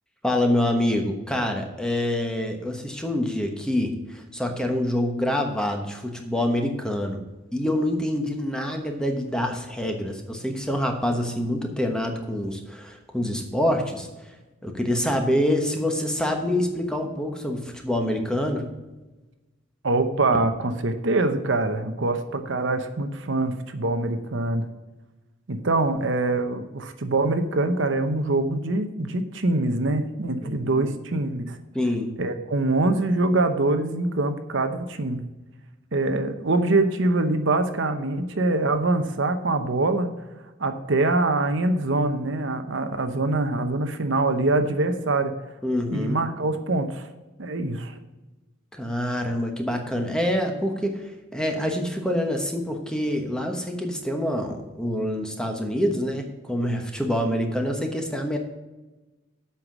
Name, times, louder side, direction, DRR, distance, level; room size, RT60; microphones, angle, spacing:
voice 1, 0.2-7.2 7.5-14.1 14.6-18.7 30.4-30.9 31.7-32.1 45.6-46.2 48.7-51.0 51.3-58.4, left 1 dB, 5° left, 3 dB, 1.1 m, -26 dB
voice 2, 19.8-24.7 25.5-31.6 32.2-35.2 35.9-40.1 40.6-45.4 45.9-47.1 47.4-48.0, right 2 dB, 65° right, 8 dB, 0.8 m, -24 dB
8.0 x 5.7 x 7.2 m, 1.1 s
head